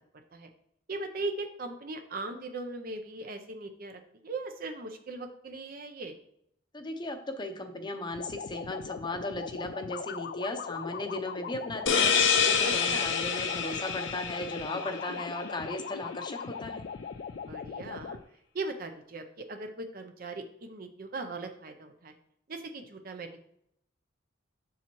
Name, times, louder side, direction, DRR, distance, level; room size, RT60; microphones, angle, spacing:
voice 1, 0.9-6.2 12.9-13.1 15.1-15.2 17.5-18.2 18.5-22.1 22.5-23.4, right 3 dB, 50° right, 5 dB, 0.6 m, -39 dB
voice 2, 6.7-16.8, left 1 dB, 25° left, 6 dB, 0.7 m, -37 dB
sound 1, 8.1-18.2, left 6 dB, 50° left, 0.3 m, -40 dB
sound 2, 11.9-15.3, left 6 dB, 70° left, 0.7 m, -27 dB
7.1 x 7.0 x 3.0 m, 0.73 s
head